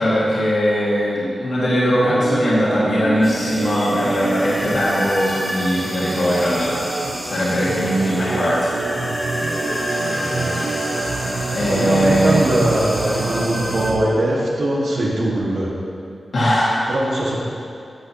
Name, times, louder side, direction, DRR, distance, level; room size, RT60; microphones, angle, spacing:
voice 1, 0.0-8.7 11.5-12.4 16.3-16.7, equal, 60° left, -9 dB, 2.3 m, -20 dB
Organ, 2.0-14.2, right 3 dB, 65° right, 0.7 m, -27 dB
sound 1, 3.2-13.9, equal, 5° left, 1.4 m, -29 dB
voice 2, 10.0-10.6 11.7-15.7 16.9-17.4, right 1 dB, 80° right, -5 dB, 2.0 m, -21 dB
13.0 x 7.8 x 3.1 m, 2.5 s
wide cardioid pair, 150°, 0 cm